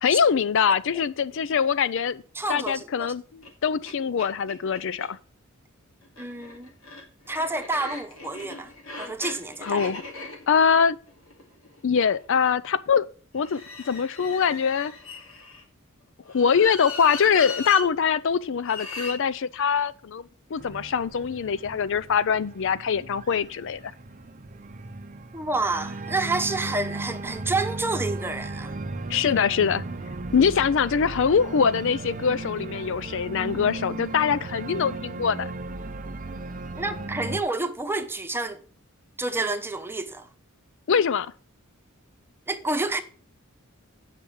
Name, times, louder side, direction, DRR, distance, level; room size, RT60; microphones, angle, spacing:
voice 1, 0.0-2.2 2.5-5.2 9.6-10.0 10.5-11.0 11.8-13.1 13.3-13.6 13.9-14.9 16.3-20.2 20.5-23.9 29.1-29.8 30.3-35.5 40.9-41.3, left 6 dB, 65° left, 0.5 m, -23 dB
voice 2, 2.3-3.1 6.2-6.7 7.3-8.7 9.0-9.8 25.3-28.7 36.8-38.6 39.2-40.3 42.5-43.0, right 2 dB, 10° right, 1.0 m, -29 dB
sound 1, 3.4-3.5 3.9-4.0 4.2-5.1 6.0-12.2 13.4-15.6 16.3-17.9 18.6-19.2, left 3 dB, 85° left, 2.6 m, -38 dB
Organ, 20.6-37.4, right 2 dB, 40° right, 0.6 m, -36 dB
8.8 x 6.0 x 7.1 m
head